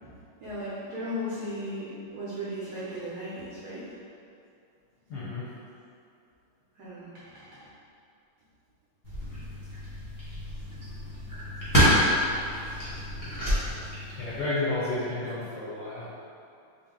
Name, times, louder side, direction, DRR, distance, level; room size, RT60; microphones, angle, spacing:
voice 1, 0.0-4.0 6.7-7.7 9.2-9.3 9.6-9.8 10.6-10.7 11.2-11.3 13.0-13.1, equal, 70° right, -10 dB, 1.0 m, -37 dB
voice 2, 5.1-5.5 14.1-16.1, left 2 dB, 70° left, -10 dB, 1.0 m, -31 dB
sound 1, 9.0-14.4, equal, 30° left, 0.3 m, -27 dB
4.0 x 2.1 x 3.5 m, 2.5 s
omnidirectional pair, 2.4 m